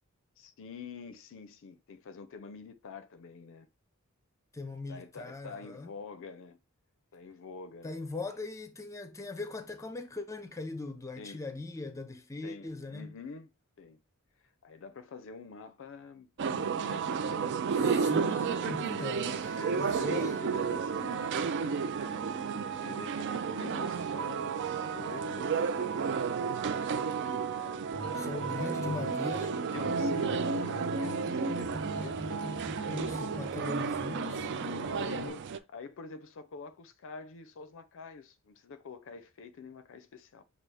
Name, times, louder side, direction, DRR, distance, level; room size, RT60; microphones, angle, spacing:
voice 1, 0.4-3.7 4.9-6.6 7.1-8.0 11.1-11.4 12.4-13.5 13.8-14.0 14.6-19.1 19.5-22.2 22.6-26.4 27.5-27.9 28.5-32.3 34.3-40.4, left 4 dB, 60° left, 0.4 m, -46 dB
voice 2, 4.5-5.9 7.8-13.1 17.8-20.4 28.2-29.5 32.8-34.4, left 3 dB, 15° left, 0.5 m, -40 dB
sound 1, 16.4-35.6, right 6 dB, 55° right, 0.4 m, -32 dB
sound 2, 27.9-35.3, equal, 80° right, 1.2 m, -38 dB
6.1 x 2.4 x 3.3 m
head